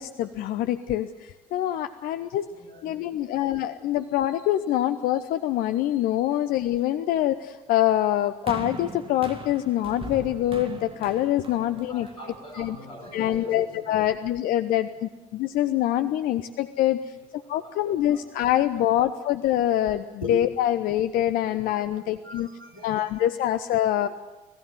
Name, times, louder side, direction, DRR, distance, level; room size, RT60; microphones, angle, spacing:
voice 1, 0.0-2.5 2.8-12.1 12.5-12.8 13.1-17.0 17.5-22.5 22.8-24.1, left 12 dB, 55° left, 11 dB, 0.9 m, -25 dB
voice 2, 2.5-3.1 11.5-13.8 17.4-18.2 18.8-18.9 20.2-20.4 21.9-23.1, left 1 dB, 85° left, 2 dB, 4.2 m, -41 dB
sound 1, 8.5-12.8 13.6-13.7, right 4 dB, 30° right, 2.8 m, -40 dB
25.5 x 17.5 x 7.7 m, 1.2 s
figure-of-eight pair, 50°, 18 cm